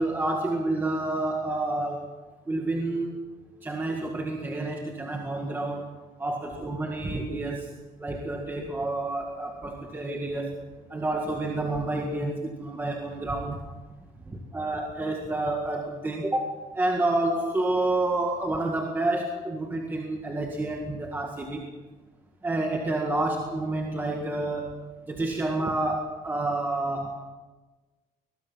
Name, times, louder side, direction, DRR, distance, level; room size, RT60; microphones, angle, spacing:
voice 1, 0.0-2.1 2.5-3.2 3.6-5.9 6.2-7.7 8.0-10.6 10.9-13.6 14.3-21.7 22.4-24.8 25.1-27.2, right 2 dB, 10° right, 1 dB, 1.8 m, -29 dB
22.5 x 21.0 x 5.7 m, 1.2 s
cardioid pair, 175°, 16 cm